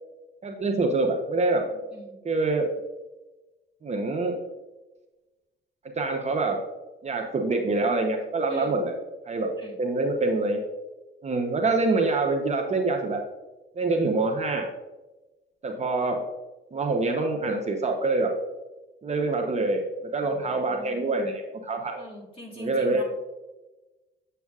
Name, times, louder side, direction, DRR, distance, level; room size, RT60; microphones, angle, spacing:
voice 1, 0.4-1.7 2.2-2.7 3.8-4.3 6.0-6.6 7.0-8.9 9.3-9.5 9.8-10.6 11.2-13.2 13.8-14.7 15.6-16.2 16.7-18.3 19.0-19.8 20.1-22.0 22.6-23.0, right 3 dB, 35° right, 2 dB, 0.9 m, -25 dB
voice 2, 1.7-2.2 8.5-8.7 9.6-9.8 20.2-21.0 22.0-23.0, left 1 dB, 25° left, -3 dB, 2.0 m, -44 dB
7.4 x 6.8 x 2.4 m, 1.1 s
cardioid pair, 90°, 20 cm